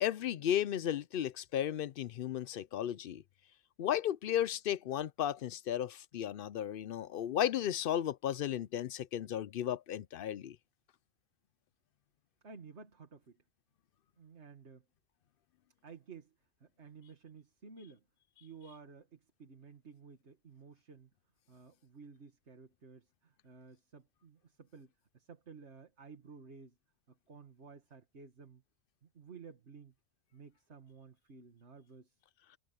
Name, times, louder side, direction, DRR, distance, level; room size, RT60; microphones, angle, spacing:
voice 1, 0.0-3.2 3.8-10.6, left 10 dB, 60° left, 0.6 m, -34 dB
voice 2, 12.4-13.4 14.2-14.8 15.8-16.3 16.6-18.0 18.4-21.1 21.5-26.8 27.1-28.6 29.0-29.9 30.3-32.2, right 5 dB, 70° right, 2.3 m, -54 dB
omnidirectional pair, 1.2 m